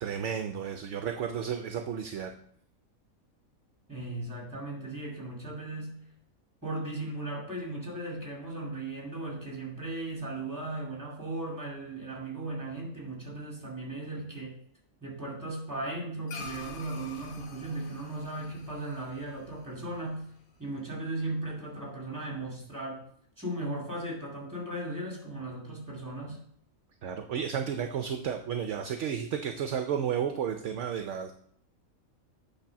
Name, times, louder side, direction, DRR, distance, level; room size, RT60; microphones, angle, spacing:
voice 1, 0.0-2.3 27.0-31.3, right 8 dB, 65° right, 6 dB, 0.8 m, -32 dB
voice 2, 3.9-6.0 6.6-14.5 15.0-20.3 20.6-23.0 23.4-26.4, right 2 dB, 15° right, -2 dB, 2.2 m, -37 dB
sound 1, 16.3-20.9, left 4 dB, 75° left, 1.3 m, -47 dB
8.6 x 3.4 x 5.7 m, 0.64 s
omnidirectional pair, 1.5 m